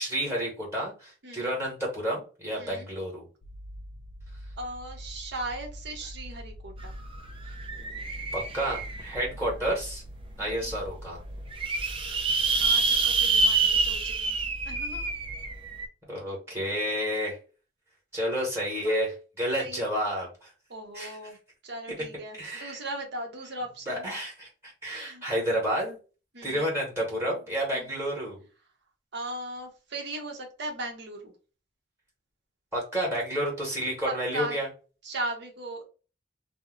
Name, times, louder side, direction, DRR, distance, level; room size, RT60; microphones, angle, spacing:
voice 1, 0.0-3.3 8.3-10.0 10.4-11.2 12.1-12.5 16.1-17.4 18.1-20.5 20.9-21.2 21.9-22.0 22.4-22.8 23.9-26.0 26.4-28.4 32.7-34.7, equal, 15° right, -3 dB, 1.2 m, -30 dB
voice 2, 1.2-1.5 2.6-2.9 4.6-6.9 12.6-14.4 14.6-15.1 18.8-19.0 19.6-19.9 20.7-21.4 21.6-24.1 24.9-25.2 26.3-26.7 27.7-27.9 29.1-31.3 34.0-34.6 35.0-35.9, right 2 dB, 65° right, 2 dB, 0.9 m, -38 dB
sound 1, 3.4-15.5, equal, 70° left, 0.5 m, -44 dB
sound 2, 6.8-6.9 7.2-9.3 9.9-10.0 10.4-10.5 10.6-10.7 11.3-15.9, right 4 dB, 30° right, 0.5 m, -27 dB
2.6 x 2.1 x 3.7 m, 0.35 s
head